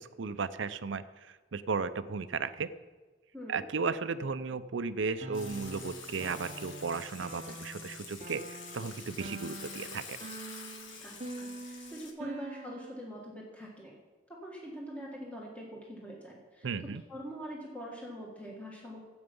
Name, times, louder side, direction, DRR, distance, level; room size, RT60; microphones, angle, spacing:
voice 1, 0.0-2.7 3.5-10.2 16.6-17.0, right 5 dB, 75° right, 13 dB, 0.5 m, -35 dB
sound 1, 5.2-13.1, right 2 dB, 35° right, 0.7 m, -45 dB
Water / Water tap faucet / Sink (filling or washing), 5.3-12.1, left 5 dB, 85° left, 1.6 m, -47 dB
voice 2, 11.0-14.0 14.4-16.7 17.1-19.0, equal, 5° left, -3 dB, 1.7 m, -43 dB
14.5 x 8.0 x 5.4 m, 1.3 s
head